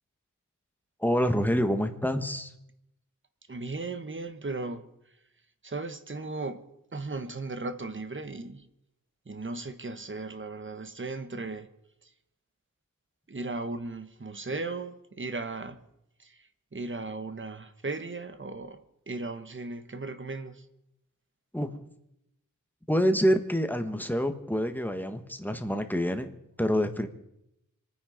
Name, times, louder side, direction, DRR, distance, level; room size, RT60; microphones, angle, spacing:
voice 1, 1.0-2.5 21.5-21.7 22.9-26.3 26.6-27.1, equal, 5° left, 1.4 m, -27 dB
voice 2, 3.5-4.9 5.6-6.6 6.9-8.7 9.3-11.7 12.0-12.1 13.3-15.8 16.2-20.6, right 3 dB, 35° right, 1.3 m, -36 dB
26.0 x 9.6 x 5.1 m
wide cardioid pair, 95°, 34 cm